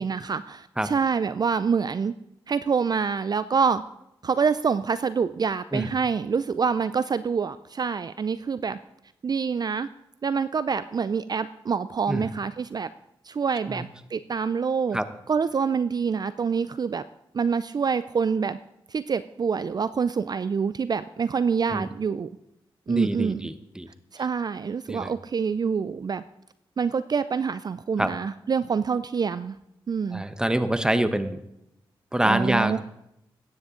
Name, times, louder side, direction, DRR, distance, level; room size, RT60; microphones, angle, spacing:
voice 1, 0.0-2.1 2.5-3.8 4.2-8.8 9.2-9.9 10.2-12.9 13.2-15.0 15.3-17.0 17.3-18.6 18.9-22.3 22.9-23.5 24.1-26.2 26.8-29.6 29.9-30.2 32.2-32.8, right 6 dB, 45° right, 14 dB, 0.4 m, -26 dB
voice 2, 22.9-23.9 24.9-25.1 28.0-28.1 30.1-31.4 32.1-32.8, right 1 dB, 10° right, 11 dB, 1.0 m, -25 dB
14.5 x 9.7 x 3.8 m, 0.84 s
cardioid pair, 55°, 9 cm